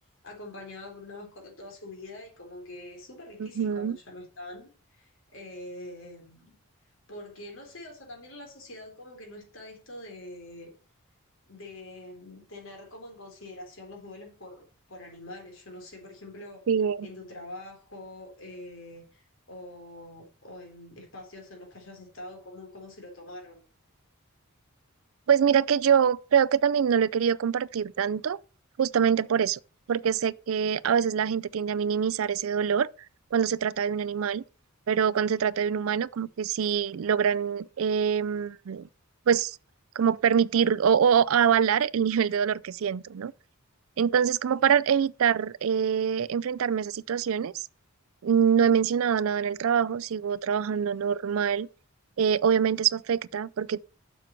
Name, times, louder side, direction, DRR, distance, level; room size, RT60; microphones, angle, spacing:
voice 1, 0.2-6.5 7.1-10.7 11.5-16.6 17.0-23.6, left 1 dB, 60° left, 3.7 m, -44 dB
voice 2, 3.4-4.0 16.7-17.1 25.3-28.4 28.8-29.6 29.9-32.9 33.3-34.4 34.9-38.9 39.3-39.6 40.0-43.3 44.0-47.7 48.2-51.7 52.2-53.8, right 7 dB, 70° right, 0.4 m, -24 dB
7.6 x 6.4 x 7.5 m
head